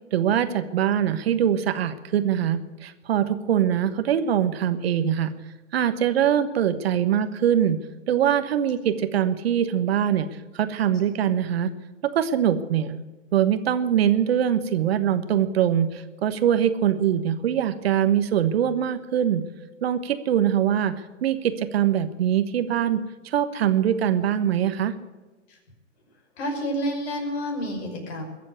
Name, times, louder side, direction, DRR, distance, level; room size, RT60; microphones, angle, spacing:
voice 1, 0.1-5.3 5.7-7.8 8.1-10.3 10.5-11.7 12.0-13.0 13.3-19.4 19.8-20.9 21.2-23.0 23.2-24.9, right 9 dB, 55° right, 11 dB, 1.3 m, -23 dB
voice 2, 26.4-28.2, equal, 55° left, 3 dB, 5.5 m, -29 dB
21.5 x 7.6 x 8.4 m, 1.2 s
figure-of-eight pair, 115°, 37 cm